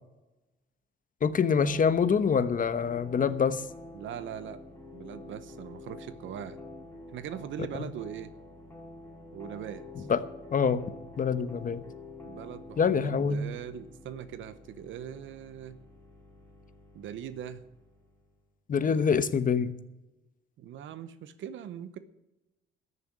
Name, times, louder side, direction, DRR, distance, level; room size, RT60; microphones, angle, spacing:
voice 1, 1.2-3.6 7.7-7.8 10.1-10.2 10.5-10.8 11.2-11.8 12.8-13.5 18.7-19.7, left 6 dB, 45° left, 13 dB, 1.0 m, -25 dB
sound 1, 1.6-18.3, left 2 dB, 10° left, 6.0 m, -48 dB
voice 2, 3.9-4.6 4.9-6.6 7.1-8.3 9.3-10.1 12.2-15.8 16.9-17.6 18.8-19.2 20.6-22.0, right 9 dB, 75° right, 13 dB, 0.9 m, -41 dB
14.0 x 7.0 x 8.7 m, 0.99 s
cardioid pair, 90°, 20 cm